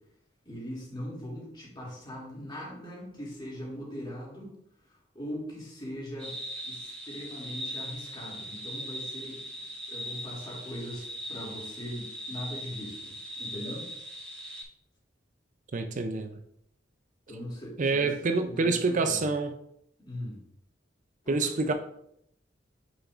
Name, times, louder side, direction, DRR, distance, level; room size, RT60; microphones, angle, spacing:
voice 1, 0.4-4.6 4.8-6.4 6.7-13.9 17.3-18.1 18.4-19.3 20.0-20.4 21.2-21.7, equal, 25° left, 2.5 m, -40 dB
sound 1, 6.2-14.6, equal, 5° left, 2.6 m, -40 dB
voice 2, 15.7-16.4 17.8-19.5 21.3-21.7, right 3 dB, 45° right, 0.5 m, -27 dB
7.9 x 6.2 x 2.5 m
head